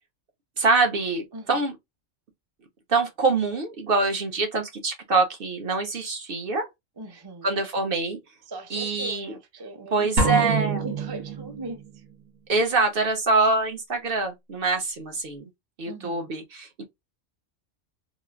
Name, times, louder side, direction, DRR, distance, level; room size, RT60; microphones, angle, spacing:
voice 1, 0.6-1.8 2.9-6.7 7.4-8.2 8.7-9.3 9.9-10.9 12.5-15.4 15.8-16.9, right 3 dB, 55° right, 0.7 m, -25 dB
voice 2, 1.3-1.6 7.0-7.5 8.5-10.4 10.8-12.0 15.9-16.3, right 2 dB, 30° right, 0.4 m, -39 dB
sound 1, 10.2-12.0, right 4 dB, 75° right, 1.4 m, -26 dB
3.1 x 2.4 x 2.3 m
omnidirectional pair, 1.4 m